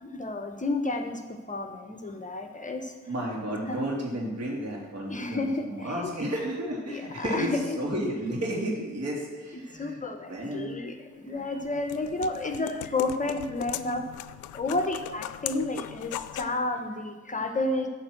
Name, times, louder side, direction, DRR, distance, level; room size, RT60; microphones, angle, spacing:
voice 1, 0.0-2.9 3.7-3.8 5.1-6.3 6.9-7.8 9.8-14.1 14.5-17.9, left 2 dB, 25° left, 6 dB, 0.8 m, -31 dB
voice 2, 3.1-7.5 7.8-10.0 10.3-10.8 11.3-11.4, right 1 dB, 55° right, -2 dB, 3.1 m, -32 dB
sound 1, 11.4-16.6, left 14 dB, 80° left, 0.5 m, -39 dB
10.5 x 4.5 x 7.7 m, 1.4 s
cardioid pair, 90°, 30 cm